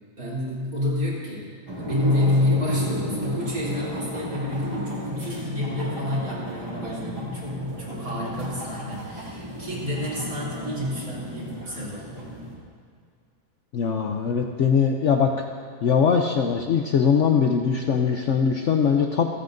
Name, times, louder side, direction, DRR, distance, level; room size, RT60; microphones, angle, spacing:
voice 1, 0.2-1.5 1.8-12.3, left 1 dB, 55° right, -7 dB, 3.9 m, -28 dB
sound 1, 1.7-12.5, equal, 25° right, 2.6 m, -33 dB
voice 2, 13.7-15.3 15.8-19.3, left 6 dB, 60° left, 3 dB, 0.8 m, -21 dB
27.5 x 9.3 x 2.6 m, 2.1 s
omnidirectional pair, 1.8 m